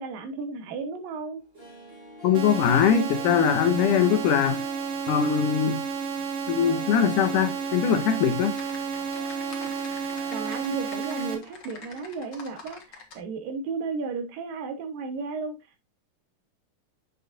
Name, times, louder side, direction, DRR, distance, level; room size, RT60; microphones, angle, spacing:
voice 1, 0.0-1.4 10.3-15.6, right 4 dB, 75° right, 2.9 m, -34 dB
Harp, 1.4-12.4 12.7-12.8, left 2 dB, 15° right, 2.6 m, -47 dB
voice 2, 2.2-4.6 5.1-5.8 6.5-8.6, left 7 dB, 75° left, 2.1 m, -22 dB
sound 1, 2.3-11.3, right 5 dB, 55° right, 1.9 m, -31 dB
Typing, 8.0-13.2, left 4 dB, 45° left, 1.5 m, -46 dB
7.9 x 7.1 x 2.6 m
omnidirectional pair, 4.1 m